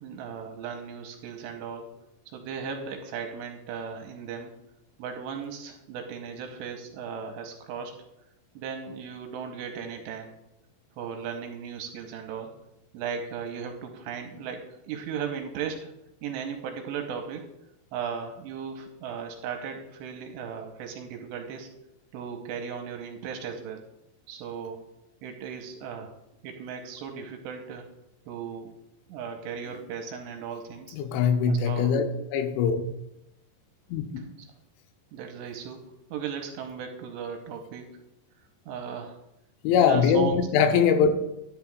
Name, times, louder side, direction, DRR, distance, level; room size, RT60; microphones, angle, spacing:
voice 1, 0.0-1.9 2.3-4.5 5.0-7.9 8.6-10.3 11.0-12.5 12.9-15.9 16.2-17.5 17.9-21.7 22.1-23.8 24.3-24.8 25.2-26.1 26.4-27.9 28.3-28.7 29.1-31.0 31.5-31.9 35.1-35.8 36.1-37.9 38.7-39.2 39.8-40.4, right 7 dB, 80° right, 4 dB, 2.8 m, -36 dB
voice 2, 30.9-32.1 32.3-32.8 33.9-34.0 39.6-41.2, left 6 dB, 85° left, 6 dB, 3.1 m, -22 dB
11.0 x 10.0 x 2.4 m, 0.85 s
omnidirectional pair, 5.3 m